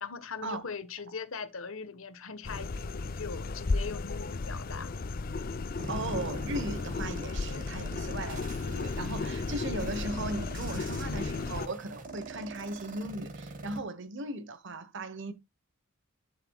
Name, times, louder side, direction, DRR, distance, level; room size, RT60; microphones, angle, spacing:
voice 1, 0.0-4.9, left 5 dB, 75° left, 1.3 m, -40 dB
sound 1, 2.4-11.7, left 3 dB, 45° left, 0.5 m, -34 dB
sound 2, 5.8-13.8, right 2 dB, 40° right, 1.7 m, -44 dB
voice 2, 5.9-15.3, right 2 dB, 60° right, 1.1 m, -37 dB
11.5 x 6.7 x 2.3 m
head